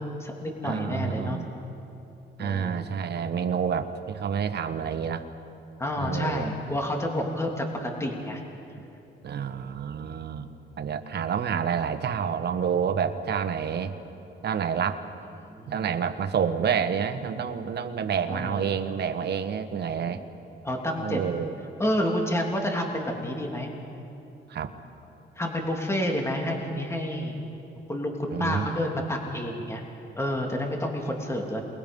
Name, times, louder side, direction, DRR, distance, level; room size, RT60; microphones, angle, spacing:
voice 1, 0.0-1.4 2.4-2.8 5.8-8.4 9.4-9.6 15.4-15.7 18.3-18.7 19.8-20.3 20.6-21.2 21.8-23.7 25.4-27.4 27.9-29.8 30.2-31.6, left 1 dB, 15° left, 0 dB, 3.1 m, -29 dB
voice 2, 0.6-1.5 2.4-5.2 6.0-6.5 9.2-10.5 10.8-14.0 14.4-15.0 15.7-20.2 21.0-21.5 24.5-24.7 28.3-28.7, right 7 dB, 55° right, 8 dB, 1.4 m, -28 dB
28.5 x 21.5 x 5.5 m, 2.8 s
cardioid pair, 90°, 20 cm